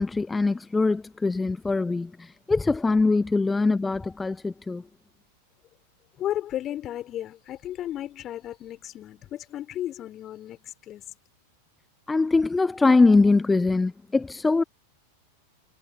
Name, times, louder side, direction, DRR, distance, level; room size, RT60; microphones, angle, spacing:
voice 1, 0.0-4.8 12.1-14.6, left 3 dB, 10° left, 0.9 m, -22 dB
voice 2, 6.2-11.0, left 12 dB, 30° left, 4.6 m, -34 dB
figure-of-eight pair, 90°, 0 cm